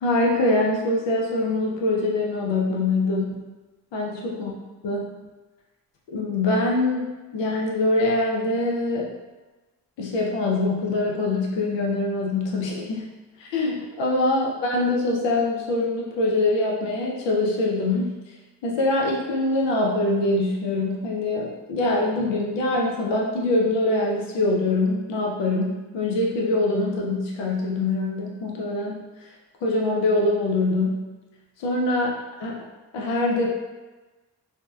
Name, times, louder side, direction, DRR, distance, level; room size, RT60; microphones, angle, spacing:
voice 1, 0.0-3.4 3.9-4.5 4.8-5.1 6.1-9.1 10.0-13.0 13.4-18.1 18.6-29.0 29.6-31.1 31.6-32.1 32.4-32.6 32.9-33.5, left 2 dB, 75° left, -2 dB, 0.6 m, -24 dB
2.8 x 2.0 x 2.2 m, 1.2 s
cardioid pair, 55°, 44 cm